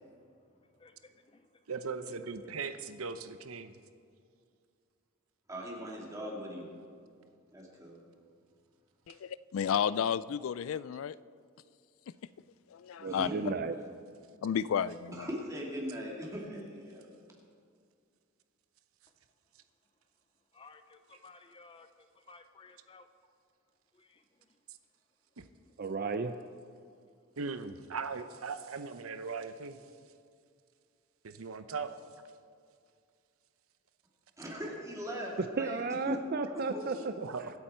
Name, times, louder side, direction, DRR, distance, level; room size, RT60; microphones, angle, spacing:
voice 1, 0.8-1.5 20.5-21.9 22.3-23.1 24.0-24.2, left 4 dB, 25° left, 9 dB, 0.6 m, -56 dB
voice 2, 1.7-3.7 25.4-25.5 27.4-29.8 31.2-31.9 37.2-37.5, right 4 dB, 85° right, 10 dB, 0.8 m, -39 dB
voice 3, 5.5-6.7 7.5-8.0 13.1-13.3 15.1-17.1 34.4-35.8 36.1-36.2 36.5-36.8, equal, 15° right, -3 dB, 2.8 m, -39 dB
voice 4, 9.1-11.2 12.7-13.3 14.4-15.3, left 8 dB, 70° left, 18 dB, 0.3 m, -32 dB
voice 5, 13.0-13.8 25.8-26.3 35.4-37.1, right 4 dB, 45° right, 9 dB, 0.5 m, -33 dB
23.5 x 8.5 x 4.5 m, 2.3 s
head